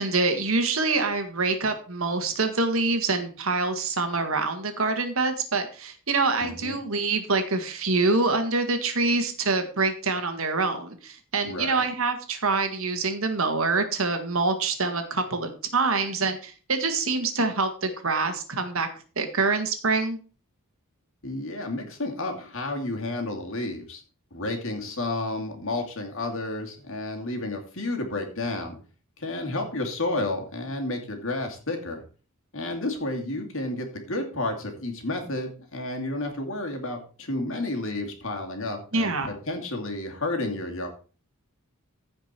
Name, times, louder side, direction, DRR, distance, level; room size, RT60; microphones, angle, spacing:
voice 1, 0.0-18.9 19.2-20.2 38.9-39.3, right 3 dB, 65° right, 7 dB, 1.7 m, -25 dB
voice 2, 6.4-6.7 11.4-11.8 21.2-24.0 24.3-28.8 29.2-32.0 32.5-40.9, left 2 dB, 60° left, 3 dB, 2.5 m, -31 dB
15.0 x 5.1 x 4.4 m, 0.37 s
head